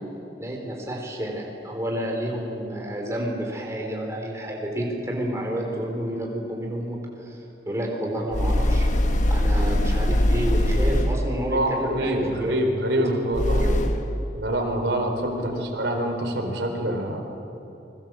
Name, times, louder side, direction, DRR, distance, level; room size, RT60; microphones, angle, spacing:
voice 1, 0.4-7.4 7.7-8.9 9.3-12.5 13.0-13.1 13.6-13.8 15.4-15.5, equal, 15° right, 0 dB, 3.9 m, -30 dB
sound 1, 8.3-11.4 13.3-14.2, left 1 dB, 45° left, 1.3 m, -21 dB
voice 2, 11.5-13.7 14.4-17.2, right 1 dB, 80° right, 3 dB, 4.0 m, -25 dB
28.0 x 22.0 x 7.6 m, 2.9 s
head